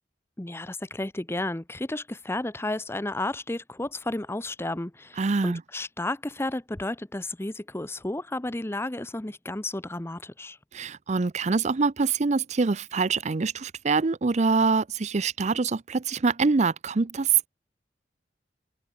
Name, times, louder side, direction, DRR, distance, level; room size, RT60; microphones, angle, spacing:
voice 1, 0.4-10.6, left 2 dB, 15° left, 0.8 m, -32 dB
voice 2, 5.2-5.6 10.7-17.5, right 4 dB, 40° right, 0.5 m, -25 dB
head